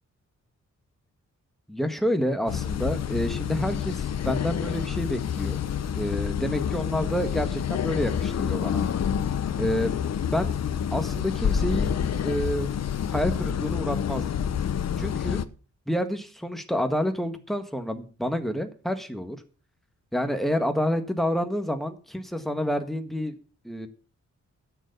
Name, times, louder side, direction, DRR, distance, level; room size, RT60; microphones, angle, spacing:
voice 1, 1.7-5.6 5.9-8.8 9.6-9.9 10.3-10.5 10.9-11.9 12.2-12.7 13.1-14.3 15.0-15.4 15.9-19.4 20.1-23.3 23.6-23.9, equal, ahead, 7 dB, 1.6 m, -28 dB
sound 1, 2.5-15.4, left 8 dB, 60° left, 0.9 m, -28 dB
12.0 x 7.0 x 6.8 m, 0.37 s
wide cardioid pair, 120°, 29 cm